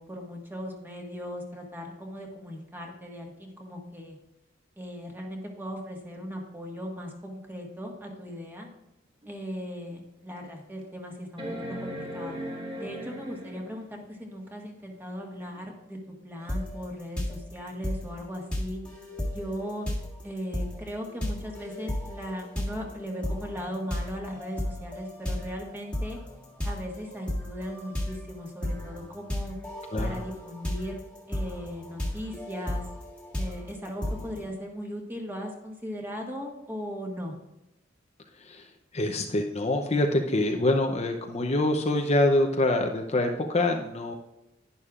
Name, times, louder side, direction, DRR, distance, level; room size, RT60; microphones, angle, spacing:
voice 1, 0.0-4.2 4.8-8.7 9.2-11.5 11.8-12.4 12.8-16.0 16.2-18.8 19.3-19.9 20.2-26.2 26.6-29.5 30.0-31.0 31.3-32.8 33.4-37.3, equal, 10° right, 0 dB, 1.6 m, -38 dB
sound 1, 9.2-9.3 9.9-10.0 11.4-13.9 15.6-15.7, equal, 30° right, 1.7 m, -37 dB
sound 2, 16.5-16.8 17.2-34.5, left 1 dB, 5° left, 1.7 m, -34 dB
voice 2, 29.9-30.3 38.4-38.7 38.9-44.1, left 1 dB, 35° left, 3 dB, 0.7 m, -25 dB
11.0 x 10.5 x 2.5 m, 0.91 s
head